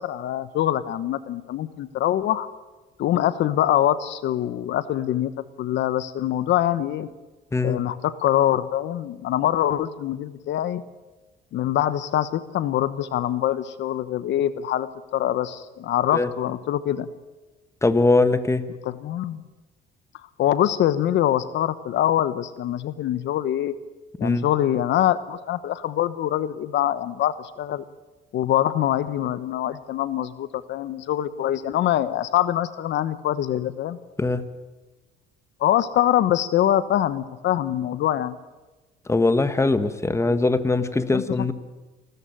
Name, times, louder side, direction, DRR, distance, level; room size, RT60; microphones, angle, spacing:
voice 1, 0.0-2.5 3.0-5.3 5.6-7.1 7.6-10.8 11.5-17.1 18.7-19.4 20.1-23.7 24.2-27.8 28.3-34.0 35.6-38.4 41.1-41.5, left 12 dB, 65° left, 1.0 m, -24 dB
voice 2, 17.8-18.6 24.2-24.5 34.2-34.4 39.1-41.5, left 3 dB, 15° left, 1.5 m, -21 dB
28.0 x 14.0 x 9.0 m
cardioid pair, 90°, 20 cm